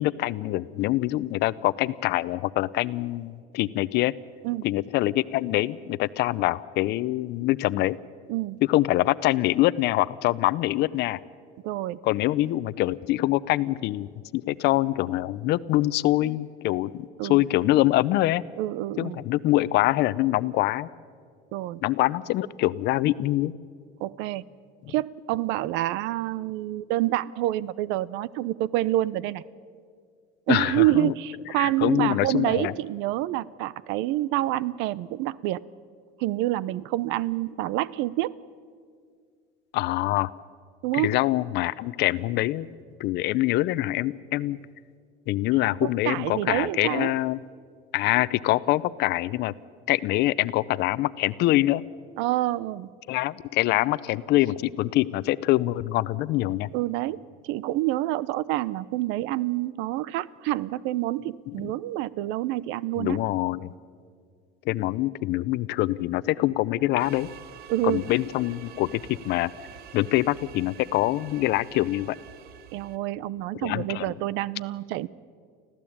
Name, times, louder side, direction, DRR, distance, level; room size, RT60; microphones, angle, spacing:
voice 1, 0.0-4.1 4.6-8.0 8.7-11.2 12.0-18.4 19.0-20.9 21.8-23.5 24.9-25.0 30.5-31.1 31.6-32.7 39.7-40.3 40.9-42.7 43.0-44.6 45.3-47.4 47.9-49.5 49.9-51.8 53.1-56.7 61.5-61.7 63.0-63.7 64.7-67.3 67.8-69.5 69.9-72.2 73.6-74.1, left 16 dB, 60° left, 17 dB, 0.7 m, -24 dB
voice 2, 11.6-12.0 17.2-17.4 18.6-19.2 21.5-21.8 24.0-24.4 24.9-29.4 30.5-35.6 36.2-38.3 40.8-41.2 45.8-47.1 52.2-52.9 56.7-57.2 57.4-63.2 67.7-68.1 72.7-75.1, right 15 dB, 70° right, 21 dB, 0.7 m, -27 dB
waves in vase, 67.0-73.0, right 9 dB, 55° right, 1.2 m, -47 dB
25.0 x 15.5 x 8.7 m, 2.1 s
supercardioid pair, 115°, 20 cm